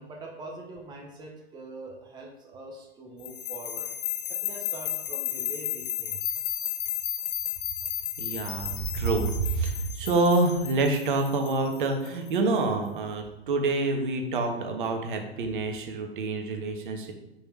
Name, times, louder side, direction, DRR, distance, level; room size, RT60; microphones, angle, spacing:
voice 1, 0.0-3.9 4.4-6.5, right 2 dB, 15° right, 0 dB, 1.1 m, -43 dB
sound 1, 3.2-12.3, left 11 dB, 40° left, 1.1 m, -33 dB
voice 2, 8.2-17.1, right 3 dB, 50° right, 4 dB, 1.5 m, -27 dB
6.8 x 5.9 x 4.8 m, 0.96 s
figure-of-eight pair, 110°, 33 cm